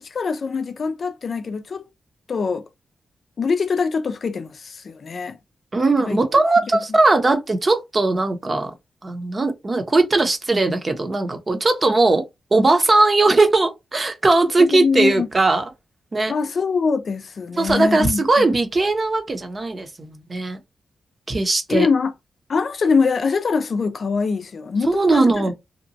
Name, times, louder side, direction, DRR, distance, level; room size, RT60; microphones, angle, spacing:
voice 1, 0.0-1.9 2.3-2.6 3.4-5.4 6.1-6.2 14.6-15.3 16.3-18.2 21.7-22.1 22.5-25.4, left 5 dB, 60° left, 0.4 m, -23 dB
voice 2, 5.7-8.7 9.0-12.3 12.5-15.6 16.1-16.3 17.6-20.6 21.3-21.9 24.9-25.5, right 2 dB, 40° right, 0.7 m, -19 dB
2.9 x 2.2 x 2.6 m
cardioid pair, 60°, 0 cm